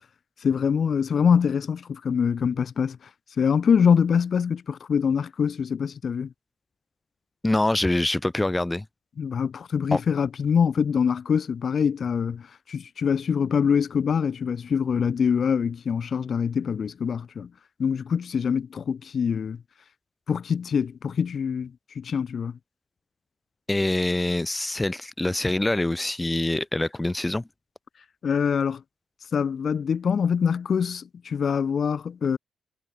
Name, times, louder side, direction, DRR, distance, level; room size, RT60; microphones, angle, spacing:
voice 1, 0.4-3.0 3.4-6.3 9.2-17.5 17.8-19.6 20.3-22.6 28.2-28.8 29.3-32.4, left 7 dB, 55° left, 0.7 m, -24 dB
voice 2, 7.4-8.9 9.9-10.0 23.7-27.4, left 1 dB, 15° left, 0.4 m, -25 dB
cardioid pair, 70°, 0 cm